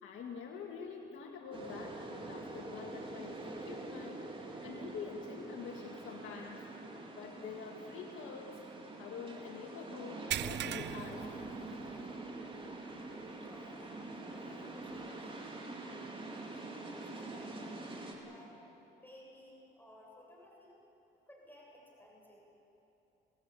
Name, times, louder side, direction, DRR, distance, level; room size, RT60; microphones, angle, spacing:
voice 1, 0.0-4.3 4.6-6.7 7.1-8.6 9.0-11.3, left 5 dB, 80° left, -1 dB, 2.1 m, -46 dB
sound 1, 1.5-18.1, right 2 dB, 25° right, 4.4 m, -45 dB
sound 2, 10.3-12.2 12.5-12.7 13.2-13.3 15.0-15.1, right 12 dB, 65° right, 0.5 m, -40 dB
voice 2, 13.3-13.9 14.3-15.8 16.3-17.8 18.2-18.5 19.0-20.7 21.3-22.4, left 1 dB, 10° left, -3 dB, 7.5 m, -58 dB
26.5 x 18.0 x 8.6 m, 3.0 s
cardioid pair, 90°, 20 cm